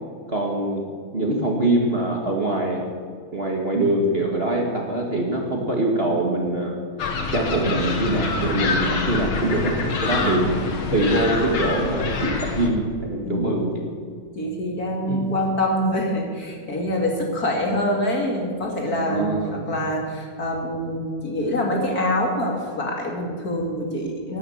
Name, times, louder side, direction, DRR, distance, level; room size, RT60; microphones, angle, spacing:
voice 1, 0.3-0.8 1.1-2.8 3.3-6.7 7.3-9.7 10.0-10.5 10.9-13.7 15.1-15.2 18.9-19.8, right 1 dB, 30° right, 0 dB, 1.8 m, -23 dB
sound 1, 7.0-12.7, left 3 dB, 70° left, 2.4 m, -26 dB
voice 2, 10.2-10.7 13.2-13.6 14.4-24.4, left 1 dB, 45° left, 0 dB, 2.8 m, -25 dB
12.0 x 11.0 x 8.5 m, 2.1 s
omnidirectional pair, 2.3 m